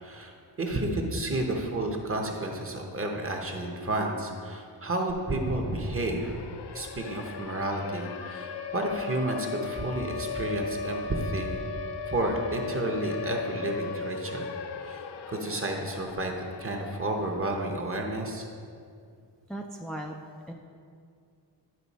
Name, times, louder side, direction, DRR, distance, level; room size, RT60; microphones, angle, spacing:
voice 1, 0.0-6.4 6.7-11.7 12.1-14.5 14.8-16.3 16.6-18.4, right 2 dB, 30° right, 2 dB, 0.9 m, -31 dB
Siren, 5.1-5.2 5.5-17.5, left 5 dB, 70° left, 0.5 m, -37 dB
voice 2, 19.5-20.2 20.5-20.6, right 1 dB, ahead, 0 dB, 0.3 m, -37 dB
10.0 x 5.5 x 4.1 m, 2.3 s
wide cardioid pair, 150°, 42 cm